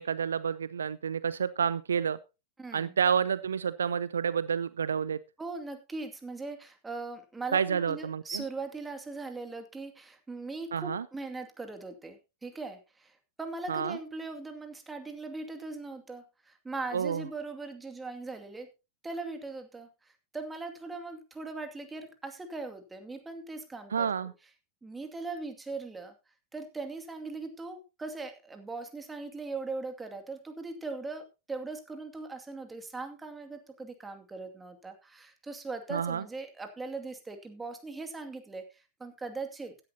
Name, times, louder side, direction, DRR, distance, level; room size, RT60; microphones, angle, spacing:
voice 1, 0.0-2.2 2.7-5.2 7.5-8.4 10.7-11.1 13.7-14.0 16.9-17.2 23.9-24.3 35.9-36.2, right 7 dB, 70° right, 17 dB, 0.5 m, -29 dB
voice 2, 2.6-2.9 5.4-18.7 19.0-24.1 24.8-26.1 26.5-39.7, right 3 dB, 10° right, 6 dB, 2.4 m, -40 dB
16.0 x 11.0 x 2.8 m, 0.28 s
figure-of-eight pair, 90°, 0 cm